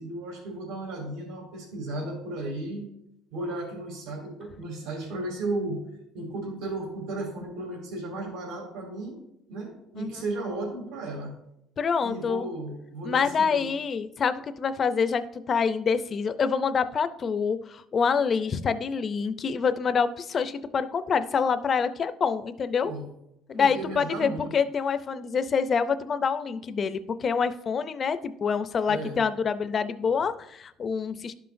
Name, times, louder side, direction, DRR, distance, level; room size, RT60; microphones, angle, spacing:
voice 1, 0.0-2.9 3.3-5.8 6.1-9.2 9.5-11.4 12.0-13.7 22.8-23.1 23.5-24.5 28.9-29.2, right 2 dB, 85° right, 1 dB, 2.6 m, -34 dB
voice 2, 11.8-12.5 13.0-22.9 23.5-31.3, left 6 dB, 30° left, 12 dB, 0.4 m, -26 dB
12.0 x 5.7 x 2.6 m, 0.81 s
cardioid pair, 160°, 0 cm